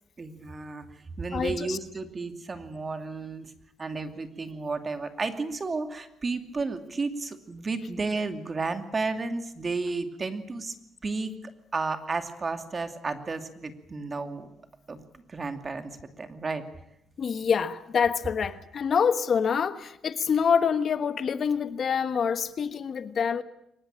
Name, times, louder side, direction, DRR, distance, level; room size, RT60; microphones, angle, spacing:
voice 1, 0.2-0.9 1.2-3.5 3.8-10.7 11.0-14.5 14.9-15.0 15.3-16.6, right 3 dB, 30° right, 2.6 m, -32 dB
voice 2, 1.3-1.8 17.2-23.4, left 6 dB, 50° left, 1.3 m, -26 dB
23.5 x 20.0 x 8.9 m
cardioid pair, 90°, 0 cm